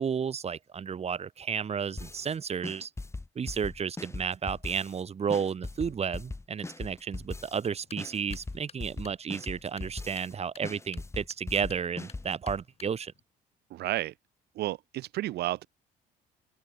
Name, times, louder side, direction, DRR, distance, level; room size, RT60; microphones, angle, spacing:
voice 1, 0.0-2.9 3.4-13.1, right 7 dB, 40° right, 5.3 m, -32 dB
sound 1, 2.0-2.3 2.6-5.0 5.3-7.7 8.0-10.3 10.6-12.6, left 3 dB, 15° left, 7.7 m, -39 dB
sound 2, 7.7-13.2, left 6 dB, 35° left, 6.9 m, -55 dB
voice 2, 13.7-14.1 14.5-15.7, right 15 dB, 75° right, 1.8 m, -32 dB
open air
cardioid pair, 110°, 17 cm